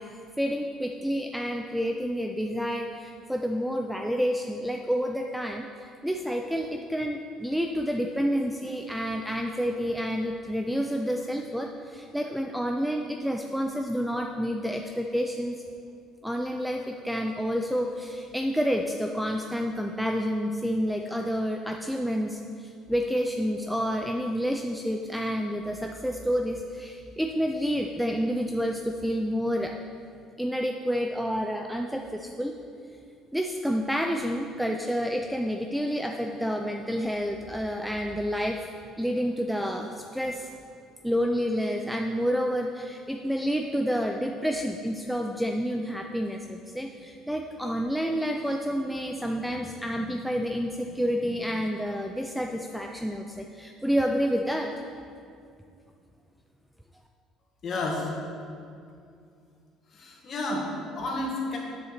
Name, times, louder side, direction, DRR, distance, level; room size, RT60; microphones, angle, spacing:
voice 1, 0.4-15.6 16.2-29.8 30.4-32.5 33.3-38.7 39.0-40.5 41.0-54.7, equal, ahead, 3 dB, 0.4 m, -29 dB
voice 2, 57.6-58.1 59.9-61.6, left 2 dB, 35° left, -2 dB, 1.9 m, -31 dB
7.7 x 6.9 x 6.6 m, 2.4 s
cardioid pair, 155°, 0 cm